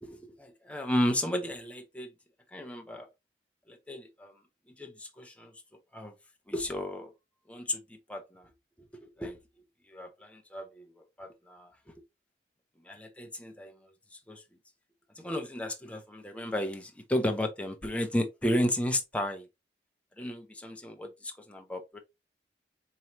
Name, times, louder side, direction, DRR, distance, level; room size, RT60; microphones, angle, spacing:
voice 1, 0.0-2.1 2.5-3.1 3.7-4.3 4.8-5.5 5.9-6.1 6.5-7.1 7.5-7.8 8.1-8.5 9.0-9.4 9.9-10.8 11.2-11.7 12.9-13.7 14.3-14.4 15.2-19.5 20.2-22.0, left 1 dB, 5° left, 0.7 m, -33 dB
4.6 x 3.1 x 2.7 m
head